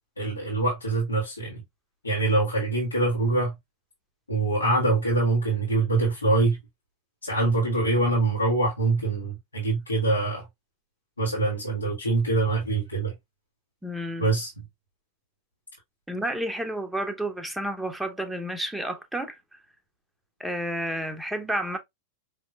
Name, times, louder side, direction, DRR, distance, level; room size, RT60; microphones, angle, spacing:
voice 1, 0.2-1.6 2.0-3.5 4.3-6.6 7.2-10.4 11.2-13.1 14.2-14.5, right 2 dB, 80° left, 1.5 m, -24 dB
voice 2, 13.8-14.3 16.1-19.6 20.4-21.8, right 1 dB, 5° right, 0.8 m, -31 dB
5.0 x 2.9 x 2.2 m
figure-of-eight pair, 90°, 0 cm